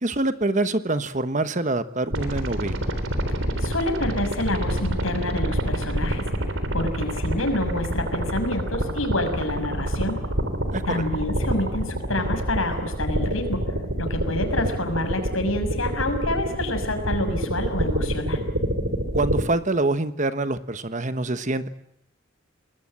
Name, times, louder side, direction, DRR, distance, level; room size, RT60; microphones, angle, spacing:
voice 1, 0.0-2.9 10.7-11.0 19.1-21.7, right 2 dB, 35° right, 12 dB, 1.2 m, -25 dB
sound 1, 2.1-19.4, right 1 dB, 65° right, 3.8 m, -27 dB
voice 2, 3.6-6.2 6.7-10.2 10.8-13.6 14.0-18.4, left 1 dB, 75° left, 7 dB, 6.2 m, -27 dB
29.0 x 20.5 x 8.9 m, 0.77 s
head